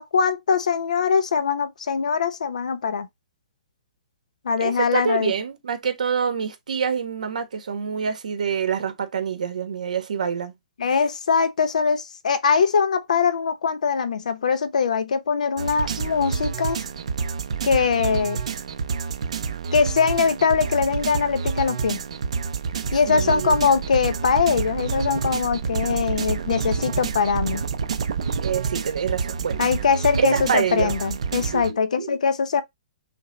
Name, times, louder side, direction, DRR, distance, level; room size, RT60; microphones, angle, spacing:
voice 1, 0.0-3.1 4.4-5.3 10.8-16.8 17.6-18.4 19.7-22.0 22.9-27.6 29.6-32.6, left 6 dB, 65° left, 0.8 m, -22 dB
voice 2, 4.6-10.5 23.1-23.6 28.4-29.7 30.2-31.0 31.4-32.2, right 6 dB, 65° right, 1.3 m, -26 dB
sound 1, 15.6-31.7, right 6 dB, 50° right, 0.7 m, -28 dB
5.9 x 2.3 x 3.9 m
hypercardioid pair, 180°, 4 cm